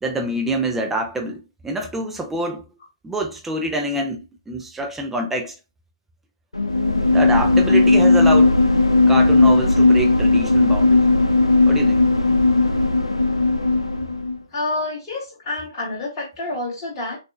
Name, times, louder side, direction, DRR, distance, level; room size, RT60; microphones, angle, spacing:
voice 1, 0.0-2.6 3.0-5.6 7.1-8.6 9.1-11.0 11.6-12.0, right 1 dB, 5° right, 0.6 m, -26 dB
sound 1, 6.5-14.4, left 2 dB, 80° left, 0.7 m, -16 dB
voice 2, 14.5-17.2, left 2 dB, 25° left, 2.6 m, -28 dB
6.2 x 2.6 x 2.3 m
figure-of-eight pair, 135°, 3 cm